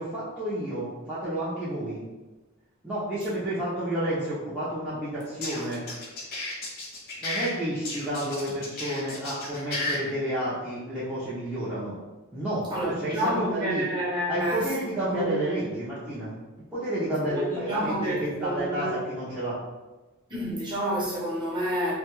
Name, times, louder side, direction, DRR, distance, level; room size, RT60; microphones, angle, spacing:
voice 1, 0.0-2.0 2.8-5.8 7.2-12.0 12.3-13.9 14.3-16.3 16.7-19.6, right 1 dB, 5° right, -12 dB, 0.6 m, -30 dB
sound 1, 5.2-7.5 7.8-10.0, left 2 dB, 50° left, 0.8 m, -33 dB
voice 2, 12.7-15.4 17.3-19.0 20.3-21.9, equal, 20° right, -8 dB, 0.9 m, -29 dB
2.3 x 2.2 x 3.0 m, 1.1 s
head